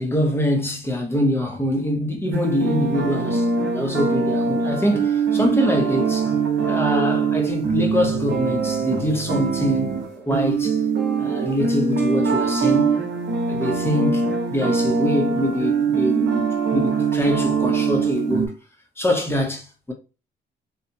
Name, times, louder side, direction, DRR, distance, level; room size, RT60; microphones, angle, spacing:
voice 1, 0.0-6.3 6.7-10.0 10.3-10.8 11.2-12.9 13.5-18.6 19.0-19.9, equal, 10° left, 0.7 m, -24 dB
sound 1, 2.3-18.5, right 5 dB, 65° right, 0.9 m, -22 dB
2.8 x 2.3 x 2.6 m
cardioid pair, 90°, 20 cm